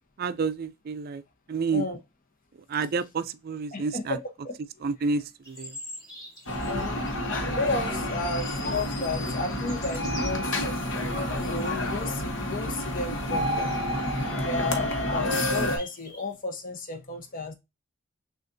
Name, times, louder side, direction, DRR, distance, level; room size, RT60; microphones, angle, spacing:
voice 1, 0.2-1.2 1.5-1.9 2.7-4.2 4.8-5.8, right 4 dB, 50° right, 0.4 m, -29 dB
voice 2, 3.7-4.5 6.7-7.0 7.5-10.7 11.3-13.8 14.4-17.5, left 3 dB, 45° left, 0.9 m, -33 dB
sound 1, 5.4-12.4 12.6-12.7 12.9-16.3, left 1 dB, 20° left, 2.2 m, -47 dB
sound 2, 6.5-15.8, left 1 dB, 65° left, 1.1 m, -29 dB
6.4 x 2.5 x 2.6 m
head